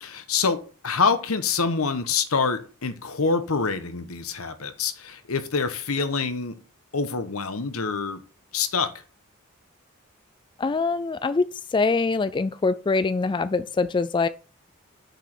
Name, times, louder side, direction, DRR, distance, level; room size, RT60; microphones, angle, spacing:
voice 1, 0.0-6.6 6.9-8.2 8.5-8.9, left 5 dB, 80° left, 1.1 m, -26 dB
voice 2, 10.6-11.4 11.7-14.3, left 4 dB, 20° left, 0.3 m, -23 dB
6.7 x 5.1 x 6.0 m
head